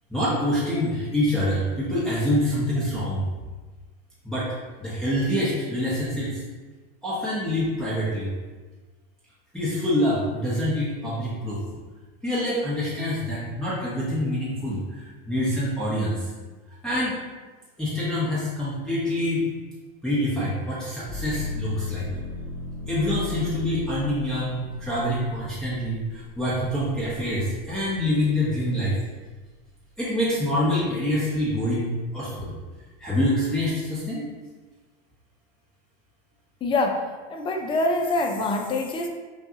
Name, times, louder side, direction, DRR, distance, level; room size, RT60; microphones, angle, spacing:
voice 1, 0.1-3.2 4.2-4.5 4.8-6.4 7.0-8.3 9.5-11.6 12.2-16.3 16.8-17.2 17.8-19.5 20.0-22.1 22.9-29.0 30.0-32.5 33.0-34.3, left 1 dB, ahead, -9 dB, 0.9 m, -26 dB
sound 1, 21.1-28.9 29.4-30.2, left 3 dB, 55° right, 1.0 m, -37 dB
voice 2, 36.6-37.0 37.3-39.1, left 2 dB, 15° left, 2 dB, 0.5 m, -24 dB
5.7 x 2.3 x 2.8 m, 1.3 s
supercardioid pair, 120°, 29 cm